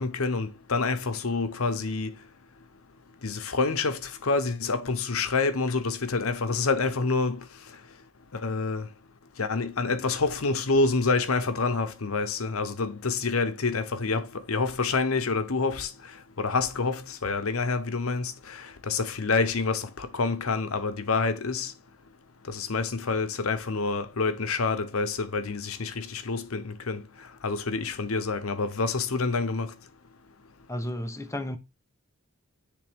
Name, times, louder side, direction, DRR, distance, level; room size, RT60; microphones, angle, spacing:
voice 1, 0.0-2.1 3.2-7.4 8.3-8.9 9.4-15.9 16.4-21.7 22.5-27.0 27.4-29.7, left 4 dB, 80° left, 0.9 m, -27 dB
voice 2, 30.7-31.6, left 1 dB, 15° left, 0.9 m, -32 dB
10.0 x 3.4 x 3.6 m
head